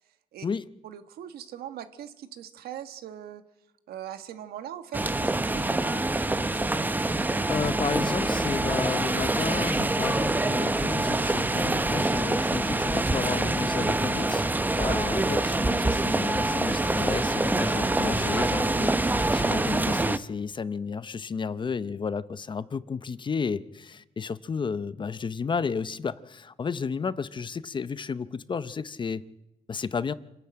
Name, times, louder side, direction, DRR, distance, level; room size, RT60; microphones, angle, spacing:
voice 1, 0.8-3.4 3.9-6.7, right 10 dB, 90° right, 1.4 m, -41 dB
sound 1, 4.9-20.2, right 2 dB, 10° right, 0.7 m, -25 dB
voice 2, 7.5-14.4 14.8-29.2 29.7-30.1, left 5 dB, 30° left, 0.6 m, -32 dB
26.5 x 11.5 x 8.8 m
cardioid pair, 120°, 16 cm